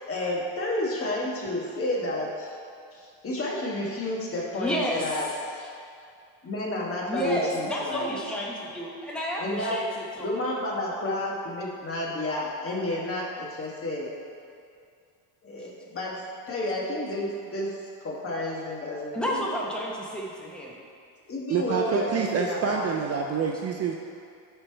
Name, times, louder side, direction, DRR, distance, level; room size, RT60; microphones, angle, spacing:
voice 1, 0.1-2.6 2.9-5.6 6.4-8.2 9.4-9.8 10.2-14.1 15.4-19.4 21.3-22.9, left 1 dB, 30° left, -3 dB, 1.3 m, -31 dB
voice 2, 4.5-5.3 7.1-10.3 19.1-20.8, equal, ahead, -3 dB, 0.9 m, -31 dB
voice 3, 21.5-24.0, right 6 dB, 40° right, 1 dB, 0.4 m, -27 dB
9.8 x 3.4 x 4.4 m, 2.4 s
cardioid pair, 130°, 42 cm